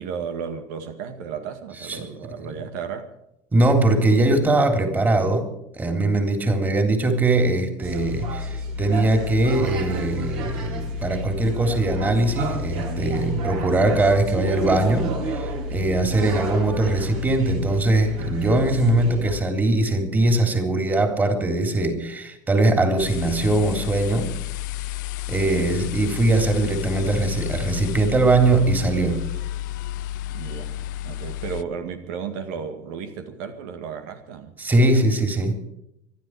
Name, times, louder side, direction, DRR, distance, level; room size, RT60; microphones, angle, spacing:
voice 1, 0.0-3.1 25.3-25.7 30.3-34.6, right 6 dB, 80° right, 7 dB, 2.0 m, -34 dB
voice 2, 3.5-5.5 5.8-24.4 25.3-29.2 34.6-35.6, right 2 dB, 20° right, 6 dB, 3.5 m, -21 dB
sound 1, 7.8-19.3, left 1 dB, 60° right, 5.2 m, -30 dB
sound 2, 23.0-31.6, left 14 dB, 90° left, 0.6 m, -31 dB
25.0 x 11.5 x 4.9 m, 0.82 s
supercardioid pair, 115°, 10 cm